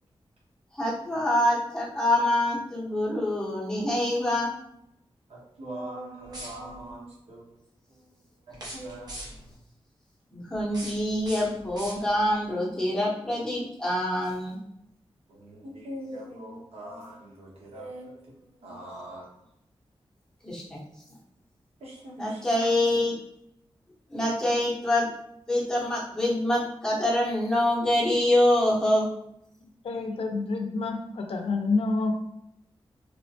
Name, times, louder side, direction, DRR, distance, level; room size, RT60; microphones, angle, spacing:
voice 1, 0.7-4.5 10.3-14.6 20.4-20.8 22.2-23.2 24.1-25.1 25.5-29.1, left 1 dB, 5° left, -6 dB, 0.7 m, -25 dB
voice 2, 5.3-7.6 7.9-9.2 15.3-19.3 21.8-22.7, right 1 dB, 90° right, -4 dB, 0.9 m, -42 dB
sound 1, 6.2-6.9 8.5-9.6 10.5-12.4, right 1 dB, 45° right, 0.7 m, -42 dB
voice 3, 29.8-32.1, left 3 dB, 75° left, 3 dB, 0.4 m, -28 dB
2.9 x 2.0 x 2.7 m, 0.76 s
wide cardioid pair, 160°, 10 cm